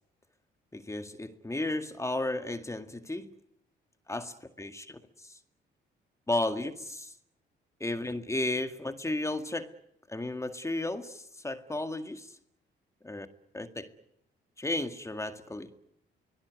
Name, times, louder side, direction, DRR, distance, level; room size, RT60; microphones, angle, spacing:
voice 1, 0.7-3.3 4.1-5.4 6.3-7.1 7.8-9.7 10.1-12.4 13.0-13.3 13.5-13.9 14.6-15.7, left 2 dB, 15° left, 2.1 m, -34 dB
24.5 x 18.5 x 9.5 m
cardioid pair, 90°, 20 cm